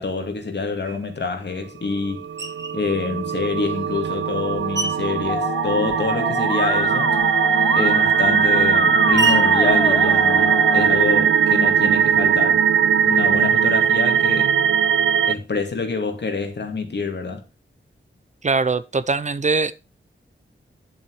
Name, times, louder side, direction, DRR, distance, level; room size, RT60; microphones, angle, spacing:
voice 1, 0.0-2.3 2.7-7.1 7.7-12.6 13.0-14.6 15.3-17.4, left 4 dB, 65° left, 2.5 m, -26 dB
sound 1, 2.1-15.4, right 8 dB, 85° right, 0.5 m, -19 dB
Screech, 2.4-2.9 3.6-6.3 6.6-10.9, right 3 dB, 65° right, 2.6 m, -32 dB
Musical instrument, 5.3-10.9, left 3 dB, 25° left, 0.5 m, -25 dB
voice 2, 18.4-19.7, right 4 dB, 40° right, 0.6 m, -21 dB
11.0 x 7.3 x 4.8 m
wide cardioid pair, 120°, 20 cm